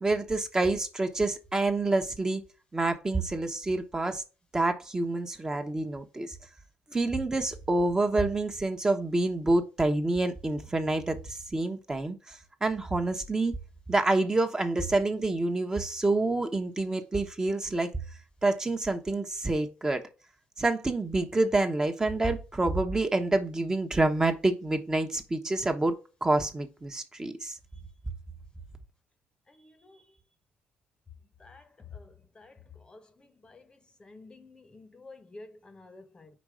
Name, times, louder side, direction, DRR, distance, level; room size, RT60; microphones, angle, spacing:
voice 1, 0.0-2.4 2.7-4.2 4.5-6.4 6.9-13.6 13.9-17.9 18.4-20.0 20.6-26.0 26.2-27.5, right 2 dB, 20° right, 1.0 m, -27 dB
voice 2, 34.0-36.3, left 3 dB, 25° left, 0.9 m, -49 dB
5.2 x 4.0 x 4.9 m
cardioid pair, 110°, 4 cm